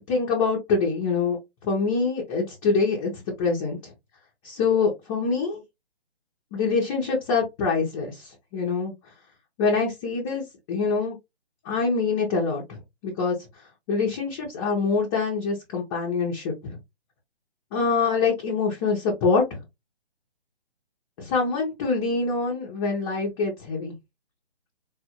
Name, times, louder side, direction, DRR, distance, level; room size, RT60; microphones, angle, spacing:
voice 1, 0.1-1.4 1.6-3.9 4.4-5.6 6.5-8.9 9.6-11.2 11.6-13.4 13.9-16.8 17.7-19.6 21.2-24.0, left 4 dB, 15° left, 0.8 m, -25 dB
4.1 x 2.6 x 2.9 m
figure-of-eight pair, 145°, 32 cm